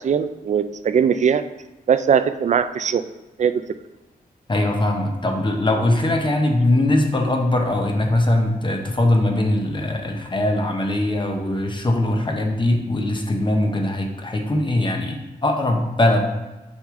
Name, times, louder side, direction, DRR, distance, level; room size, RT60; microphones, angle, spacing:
voice 1, 0.0-1.4 1.9-3.0 3.4-3.6, right 7 dB, 50° right, 11 dB, 0.4 m, -20 dB
voice 2, 4.5-16.2, left 1 dB, 30° left, 2 dB, 0.9 m, -21 dB
6.2 x 4.9 x 3.7 m, 1.1 s
wide cardioid pair, 110°, 16 cm